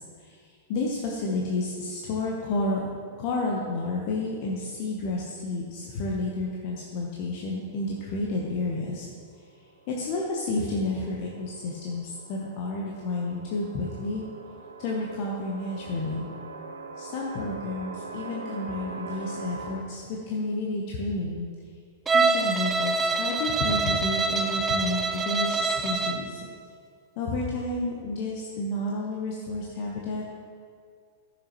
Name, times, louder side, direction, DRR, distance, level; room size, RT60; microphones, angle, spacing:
voice 1, 0.0-2.9 3.2-9.1 9.9-14.2 14.8-16.3 17.0-21.5 22.1-26.4 27.2-30.2, left 2 dB, 50° left, -2 dB, 1.1 m, -31 dB
sound 1, 9.6-19.8, right 3 dB, 75° right, 0.9 m, -42 dB
Bowed string instrument, 22.1-26.3, right 4 dB, 20° right, 0.5 m, -25 dB
14.0 x 6.2 x 3.1 m, 2.1 s
figure-of-eight pair, 100°, 0 cm